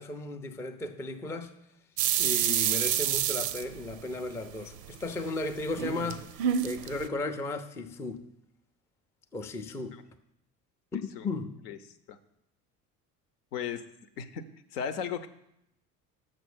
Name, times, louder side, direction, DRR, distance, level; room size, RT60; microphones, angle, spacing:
voice 1, 0.0-1.5 2.2-6.3 6.6-8.3 9.3-10.0 10.9-11.5, left 2 dB, 5° left, 0.3 m, -35 dB
sound 1, 2.0-4.4 4.8-7.1, right 10 dB, 85° right, 0.6 m, -28 dB
voice 2, 13.5-13.8 14.2-14.4 14.7-15.3, left 7 dB, 75° left, 0.7 m, -35 dB
6.5 x 6.4 x 6.2 m
figure-of-eight pair, 65°, 48 cm